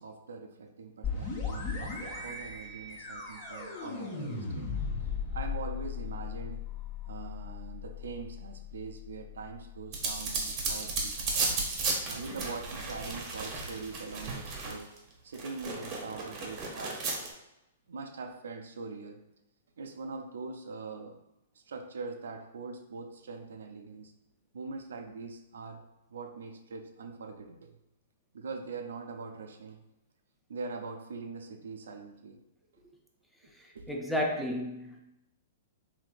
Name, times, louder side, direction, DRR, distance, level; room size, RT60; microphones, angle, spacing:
voice 1, 0.0-4.7 5.0-6.6 7.1-11.4 11.8-14.9 15.2-17.0 17.9-19.2 19.8-21.2 21.5-24.1 24.5-25.8 26.1-27.8 28.3-29.8 30.5-32.4 32.7-32.8 33.7-34.0, right 4 dB, 75° right, 4 dB, 0.4 m, -42 dB
sound 1, 1.0-10.6, left 5 dB, 35° left, 1.0 m, -38 dB
sound 2, 9.9-15.0 15.3-17.3, right 3 dB, 35° right, 0.8 m, -34 dB
voice 2, 33.5-35.0, equal, 5° left, 0 dB, 0.5 m, -33 dB
3.3 x 2.7 x 2.4 m, 0.90 s
hypercardioid pair, 120°, 0 cm